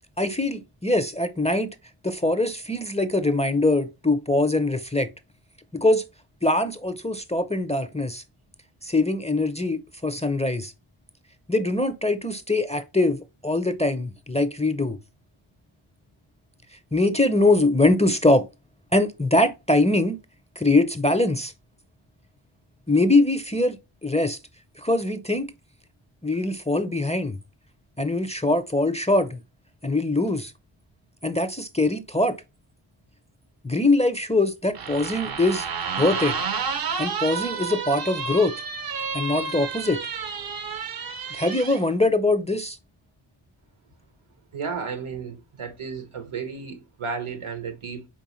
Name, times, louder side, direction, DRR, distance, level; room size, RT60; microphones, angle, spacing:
voice 1, 0.2-1.7 2.0-5.1 5.7-6.0 6.4-8.2 8.8-10.7 11.5-15.0 16.7-18.5 18.9-20.2 20.6-21.5 22.9-24.4 24.8-25.5 26.2-27.4 28.0-29.4 29.8-30.5 31.2-32.4 33.6-35.7 36.0-36.4 37.0-38.5 39.1-40.0 41.3-42.8, left 2 dB, 15° left, 0.4 m, -22 dB
sound 1, 34.7-41.8, right 5 dB, 45° right, 0.6 m, -30 dB
voice 2, 44.5-48.1, right 5 dB, 75° right, 1.0 m, -33 dB
4.6 x 3.6 x 3.0 m
cardioid pair, 40°, 50 cm